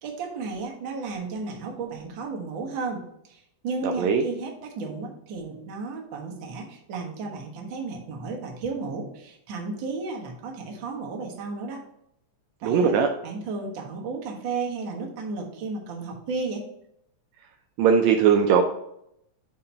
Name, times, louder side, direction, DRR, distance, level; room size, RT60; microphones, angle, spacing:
voice 1, 0.0-11.8 12.6-12.9 13.2-16.7, right 4 dB, 55° right, 1 dB, 1.5 m, -33 dB
voice 2, 3.8-4.2 12.6-13.1 17.8-18.6, right 7 dB, 80° right, 5 dB, 1.8 m, -19 dB
6.9 x 2.9 x 5.4 m, 0.76 s
omnidirectional pair, 3.3 m